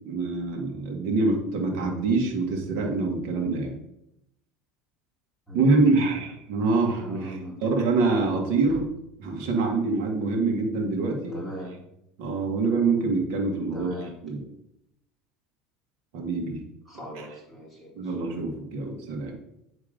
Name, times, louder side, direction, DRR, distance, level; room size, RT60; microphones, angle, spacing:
voice 1, 0.0-3.7 5.5-8.8 9.2-11.3 12.2-14.4 16.1-16.6 17.2-17.3 18.0-19.4, right 3 dB, 65° right, 1 dB, 1.7 m, -25 dB
voice 2, 5.5-6.2 6.9-7.7 8.7-8.8 11.3-11.7 13.7-14.2 16.9-18.1, equal, 5° right, -5 dB, 2.3 m, -40 dB
8.9 x 3.6 x 5.1 m, 0.82 s
supercardioid pair, 130°, 0 cm